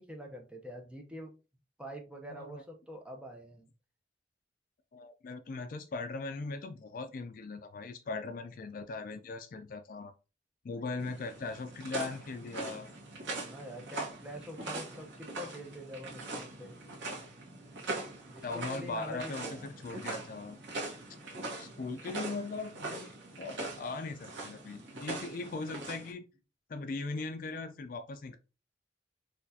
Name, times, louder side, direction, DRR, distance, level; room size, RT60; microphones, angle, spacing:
voice 1, 0.0-1.3 1.8-3.7 13.4-17.2 18.3-19.7 23.4-23.6, equal, 5° right, 0.6 m, -46 dB
voice 2, 2.3-2.6 4.9-10.1 10.6-12.9 18.4-20.6 21.6-26.2 26.7-28.4, left 3 dB, 50° left, 0.4 m, -39 dB
sound 1, 11.0-26.1, right 2 dB, 85° right, 1.1 m, -42 dB
4.2 x 2.3 x 2.7 m
head